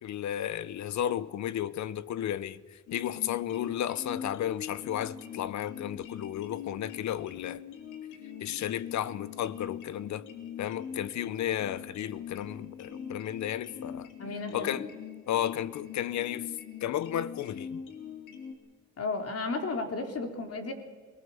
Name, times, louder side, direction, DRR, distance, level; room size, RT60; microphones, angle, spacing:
voice 1, 0.0-7.6 8.4-10.3 10.6-14.1 14.5-14.9 15.3-16.5 16.8-17.8, left 11 dB, 70° left, 0.9 m, -33 dB
sound 1, 2.9-18.5, left 8 dB, 85° left, 2.9 m, -43 dB
voice 2, 14.2-14.9 19.0-20.7, left 3 dB, 50° left, 3.7 m, -33 dB
22.5 x 18.5 x 7.2 m
cardioid pair, 90°, 30 cm